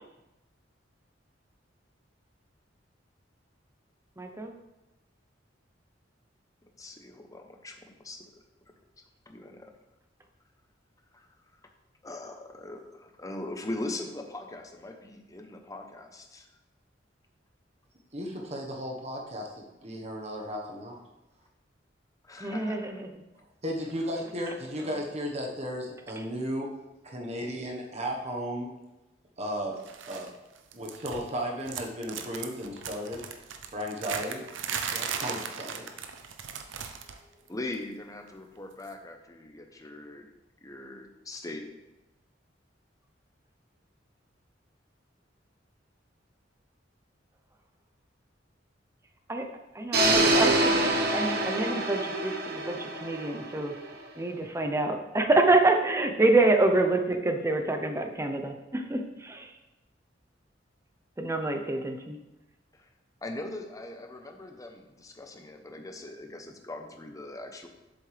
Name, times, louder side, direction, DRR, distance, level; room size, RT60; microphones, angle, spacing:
voice 1, 4.2-4.5 22.4-23.1 49.3-49.4 49.8-50.8 51.1-53.7 54.2-59.5 61.2-62.2, right 2 dB, 15° right, 5 dB, 0.7 m, -26 dB
voice 2, 6.8-7.7 8.1-8.2 9.3-9.5 12.0-12.8 13.2-16.2 22.3-22.9 37.5-40.2 40.6-41.6 63.2-64.8 65.0-67.7, left 2 dB, 20° left, 4 dB, 0.8 m, -40 dB
voice 3, 18.1-21.0 23.6-26.7 27.0-28.7 29.4-30.3 30.7-33.2 33.7-34.4 34.8-35.9, equal, 35° right, 0 dB, 1.2 m, -35 dB
sound 1, 29.9-30.3 30.6-31.4 31.6-37.2 37.5-37.7 38.8-38.9, right 7 dB, 90° right, 0.7 m, -37 dB
sound 2, 49.9-54.0, right 2 dB, 55° right, 1.1 m, -26 dB
7.6 x 7.4 x 3.3 m, 1.0 s
head